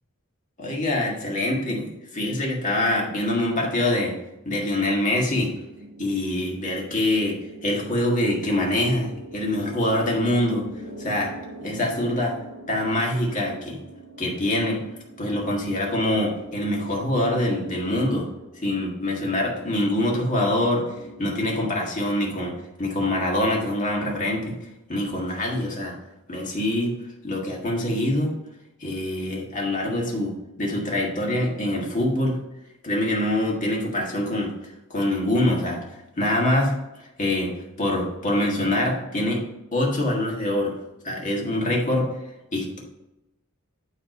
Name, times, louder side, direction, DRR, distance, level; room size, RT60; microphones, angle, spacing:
voice 1, 0.6-4.1 4.4-5.5 6.0-10.7 11.0-11.3 11.6-12.3 12.7-13.8 14.2-14.8 15.2-18.3 18.5-20.9 21.2-24.5 24.9-26.0 26.3-26.9 27.2-28.3 28.8-32.4 32.8-36.7 37.2-37.5 37.8-39.4 39.7-40.7 41.0-42.1 42.5-42.8, left 1 dB, 35° left, -2 dB, 1.7 m, -24 dB
sound 1, 5.2-22.5, right 1 dB, 55° right, 2.3 m, -44 dB
9.2 x 3.4 x 5.3 m, 0.94 s
head